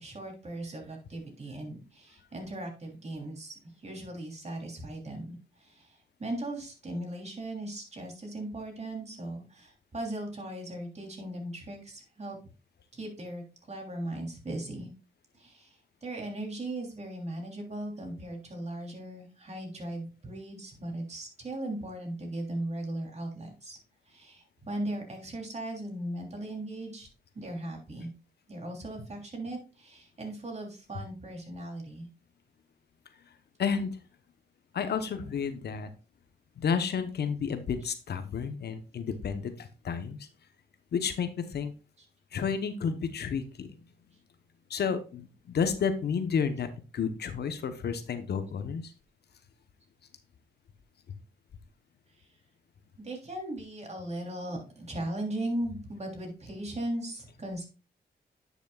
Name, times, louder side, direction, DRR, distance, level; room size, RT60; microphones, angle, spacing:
voice 1, 0.0-12.4 12.9-14.9 15.3-23.8 24.1-27.1 27.3-28.1 28.5-32.1 42.0-42.1 45.6-45.7 53.0-57.6, right 1 dB, 40° right, 1 dB, 3.2 m, -38 dB
voice 2, 33.6-34.0 34.7-35.9 36.6-40.3 40.9-41.7 42.3-43.8 44.7-48.9, left 6 dB, 70° left, 10 dB, 0.9 m, -31 dB
10.5 x 6.1 x 2.3 m, 0.33 s
cardioid pair, 65°, 18 cm